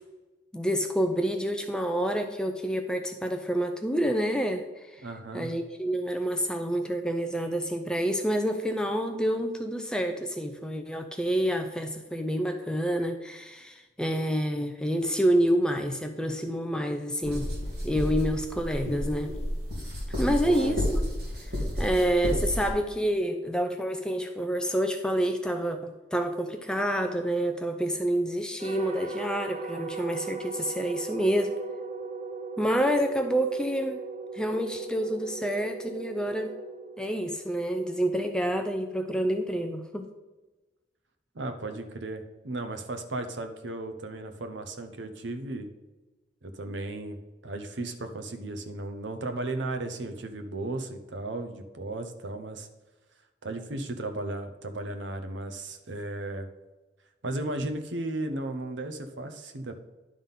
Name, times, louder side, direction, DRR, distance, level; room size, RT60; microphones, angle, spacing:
voice 1, 0.5-5.1 5.3-17.6 17.8-19.4 20.2-21.1 21.8-31.6 32.6-34.0 34.3-36.5 37.0-40.1, equal, 5° left, 6 dB, 0.4 m, -28 dB
voice 2, 5.0-5.5 20.3-20.8 41.3-45.7 46.4-47.2 47.4-52.7 53.4-56.5 57.2-59.7, right 2 dB, 75° right, 7 dB, 0.9 m, -35 dB
sound 1, 17.2-22.7, equal, 55° right, 2.4 m, -31 dB
sound 2, 28.6-37.9, right 4 dB, 35° right, 0.6 m, -38 dB
11.0 x 3.7 x 5.6 m, 1.2 s
head